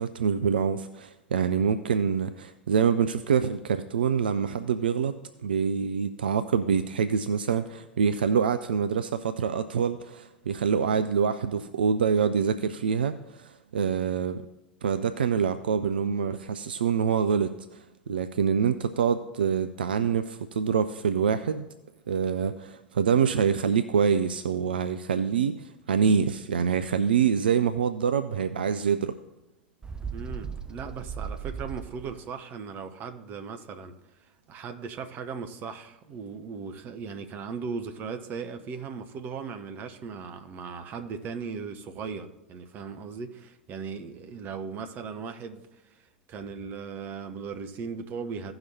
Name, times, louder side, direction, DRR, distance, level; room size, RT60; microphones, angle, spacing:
voice 1, 0.0-5.1 5.4-14.4 14.8-21.7 22.1-29.1, right 7 dB, 70° right, 10 dB, 0.4 m, -26 dB
Bird, 29.8-32.3, right 6 dB, 15° right, 0.5 m, -37 dB
voice 2, 30.1-33.9 34.2-46.0 46.3-48.5, right 5 dB, 35° right, 8 dB, 0.9 m, -38 dB
16.5 x 5.8 x 2.8 m, 0.95 s
figure-of-eight pair, 80°, 5 cm